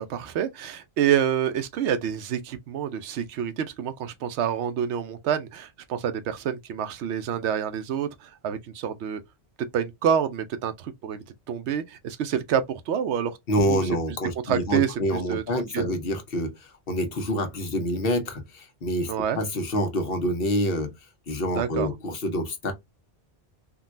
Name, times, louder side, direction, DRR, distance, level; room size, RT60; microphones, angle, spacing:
voice 1, 0.0-9.2 9.7-13.4 13.7-13.8 14.4-15.9 19.1-19.4 21.5-21.9, right 8 dB, 80° right, 0.9 m, -27 dB
voice 2, 13.5-20.9 21.3-22.7, equal, 60° left, 1.0 m, -27 dB
3.7 x 2.2 x 2.4 m
omnidirectional pair, 1.1 m